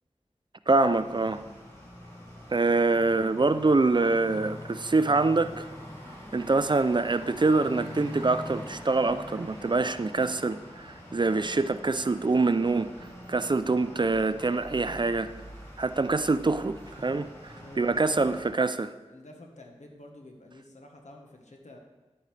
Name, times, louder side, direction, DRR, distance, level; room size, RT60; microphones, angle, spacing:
sound 1, 0.7-18.5, equal, 25° left, 3.3 m, -44 dB
voice 1, 0.7-1.4 2.5-5.7 6.3-12.9 13.3-15.3 15.8-17.3 17.8-18.9, right 3 dB, 40° right, 13 dB, 0.4 m, -25 dB
voice 2, 17.5-18.3 19.1-21.8, left 1 dB, 90° left, 2 dB, 1.3 m, -48 dB
11.0 x 8.6 x 3.3 m, 1.1 s
wide cardioid pair, 55°, 12 cm